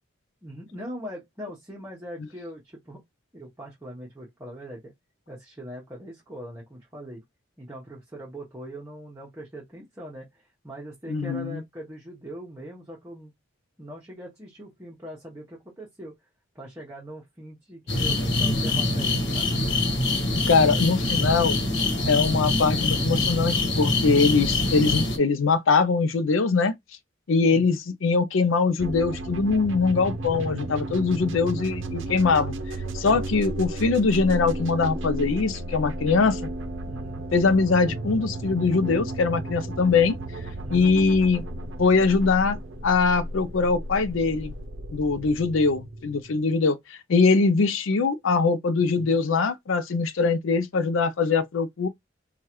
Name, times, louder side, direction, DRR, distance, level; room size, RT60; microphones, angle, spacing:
voice 1, 0.4-3.0 3.3-4.9 5.3-7.2 7.6-13.3 13.8-16.2 16.5-19.6 27.5-27.8 33.0-33.4 36.9-37.2 40.6-41.0 48.9-49.3, equal, 15° right, 0.9 m, -41 dB
voice 2, 11.1-11.6 20.5-21.6 22.1-26.7 27.3-32.5 32.9-36.5 37.3-40.1 40.7-41.4 41.8-42.6 42.8-44.5 44.9-51.9, left 4 dB, 85° left, 0.5 m, -22 dB
sound 1, 17.9-25.2, left 2 dB, 60° left, 1.2 m, -24 dB
sound 2, 28.8-46.5, right 1 dB, 75° right, 0.6 m, -34 dB
4.6 x 2.4 x 3.0 m
head